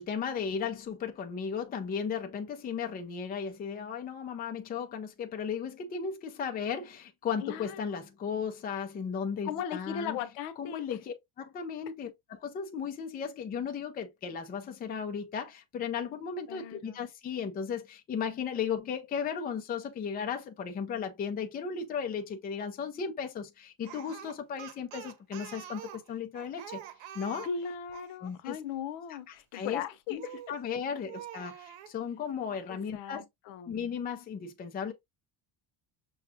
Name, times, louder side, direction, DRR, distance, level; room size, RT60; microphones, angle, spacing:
voice 1, 0.0-10.2 10.6-26.8 27.1-27.5 28.2-28.6 29.1-29.8 30.1-33.2 33.7-34.9, left 6 dB, 20° left, 0.4 m, -35 dB
voice 2, 7.4-8.0 9.4-10.8 16.5-17.0 27.4-30.4 32.7-33.8, left 7 dB, 90° left, 0.8 m, -38 dB
Speech, 23.8-28.2 30.2-30.6 31.1-31.9, right 11 dB, 85° right, 0.8 m, -46 dB
5.9 x 2.4 x 2.6 m
cardioid pair, 175°, 45 cm